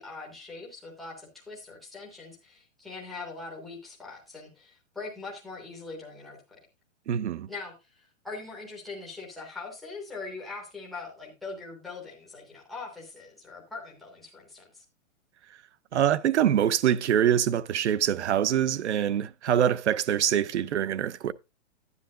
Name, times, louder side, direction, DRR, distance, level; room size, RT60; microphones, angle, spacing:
voice 1, 0.0-6.6 7.5-14.8, left 3 dB, ahead, 0.6 m, -42 dB
voice 2, 7.1-7.5 15.9-21.3, right 10 dB, 60° right, 0.7 m, -24 dB
11.0 x 9.7 x 2.5 m
hypercardioid pair, 175°, 39 cm